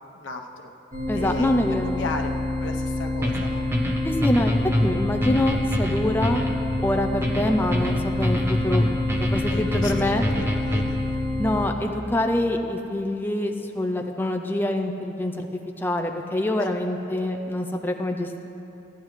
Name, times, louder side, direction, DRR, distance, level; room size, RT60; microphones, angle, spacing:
voice 1, 0.1-0.7 1.1-3.7 9.5-11.2 16.6-16.8, left 3 dB, 85° left, 3 dB, 0.8 m, -36 dB
sound 1, 0.9-11.7, left 1 dB, 45° right, 1.9 m, -28 dB
voice 2, 1.1-2.0 4.0-6.4 6.8-8.9 9.3-10.2 11.4-18.5, left 1 dB, 10° left, 4 dB, 0.4 m, -25 dB
sound 2, 3.2-11.1, equal, 15° right, 0.9 m, -26 dB
15.5 x 10.5 x 3.2 m, 2.9 s
head